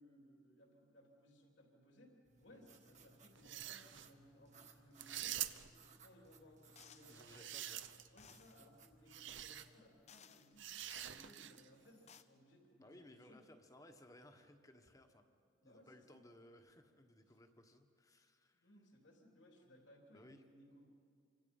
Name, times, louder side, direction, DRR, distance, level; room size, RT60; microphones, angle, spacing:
voice 1, 0.0-7.5 8.1-10.7 11.0-13.5 15.6-16.2 17.3-17.4 18.5-20.9, equal, 70° left, 0 dB, 3.4 m, -64 dB
sound 1, 2.3-9.8, right 4 dB, 35° right, 1.6 m, -64 dB
sound 2, 3.4-4.1 5.0-5.9 7.0-8.2 9.1-9.6 10.6-11.7, right 12 dB, 70° right, 0.8 m, -46 dB
sound 3, 6.8-7.2 8.2-8.6 9.6-9.7 10.1-11.2 11.8-12.2, left 8 dB, 35° left, 0.7 m, -61 dB
voice 2, 7.1-7.8 12.8-15.2 15.6-18.7 20.1-20.4, left 1 dB, 15° left, 6 dB, 1.4 m, -61 dB
28.0 x 25.0 x 5.5 m, 2.3 s
head